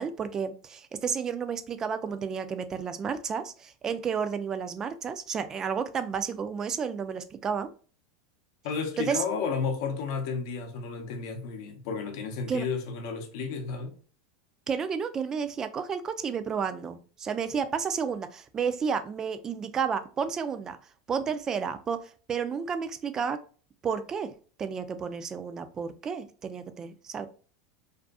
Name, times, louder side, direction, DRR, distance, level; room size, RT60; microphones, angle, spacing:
voice 1, 0.0-7.7 9.0-9.2 12.5-12.6 14.7-20.8 21.1-23.4 23.8-24.3 24.6-27.3, right 6 dB, 25° right, 0.3 m, -31 dB
voice 2, 8.6-13.9, left 5 dB, 65° left, 0.6 m, -32 dB
2.5 x 2.4 x 2.3 m
hypercardioid pair, 110°, 2 cm